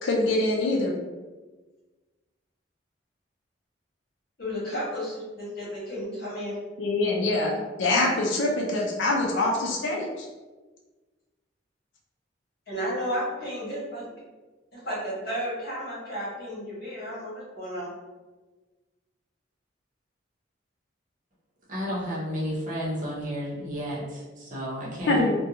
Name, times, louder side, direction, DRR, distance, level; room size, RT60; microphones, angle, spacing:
voice 1, 0.0-0.9 6.8-7.5 7.8-10.3 25.1-25.3, left 2 dB, 75° left, -1 dB, 0.4 m, -24 dB
voice 2, 4.4-6.6 12.7-14.2 14.7-17.9, equal, 55° left, -7 dB, 1.2 m, -33 dB
voice 3, 21.7-25.2, equal, 40° right, -6 dB, 0.8 m, -32 dB
2.5 x 2.2 x 2.7 m, 1.2 s
head